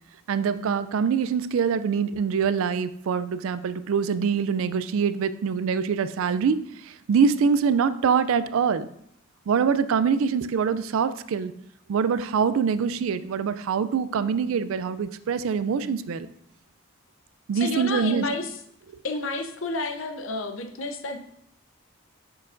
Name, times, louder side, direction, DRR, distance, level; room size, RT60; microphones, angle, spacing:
voice 1, 0.3-6.6 7.1-8.9 9.5-11.5 11.9-16.3 17.5-18.2, right 6 dB, 70° right, 14 dB, 0.3 m, -24 dB
voice 2, 17.5-18.6 19.0-21.2, left 2 dB, 65° left, 6 dB, 0.7 m, -30 dB
6.6 x 5.9 x 2.5 m, 0.72 s
head